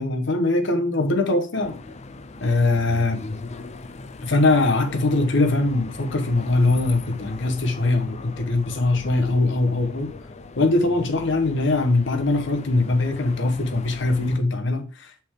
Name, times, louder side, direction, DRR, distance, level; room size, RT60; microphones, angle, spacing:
voice 1, 0.0-1.8 2.4-3.2 4.2-10.1 10.6-15.2, left 2 dB, 65° left, 1.1 m, -22 dB
sound 1, 1.6-14.4, left 3 dB, 35° left, 0.5 m, -40 dB
6.0 x 3.7 x 4.9 m
head